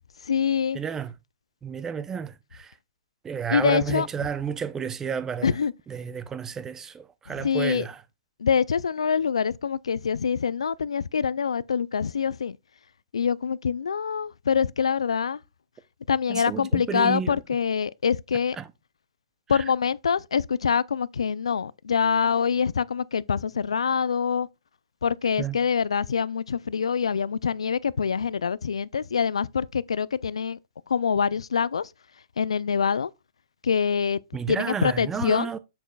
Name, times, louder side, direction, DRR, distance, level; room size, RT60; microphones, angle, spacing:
voice 1, 0.2-0.8 3.5-4.1 5.4-5.7 7.3-7.9 8.4-12.6 13.1-15.4 16.1-18.6 19.5-24.5 25.0-30.6 30.9-31.9 32.4-33.1 33.6-34.2 34.5-35.5, left 6 dB, 85° left, 0.3 m, -25 dB
voice 2, 0.7-1.1 1.6-2.7 3.2-5.5 5.9-8.0 16.3-17.4 18.6-18.7 19.5-19.6 25.4-25.6 34.3-35.6, right 7 dB, 15° right, 0.5 m, -31 dB
7.3 x 6.8 x 2.3 m
hypercardioid pair, 130°, 3 cm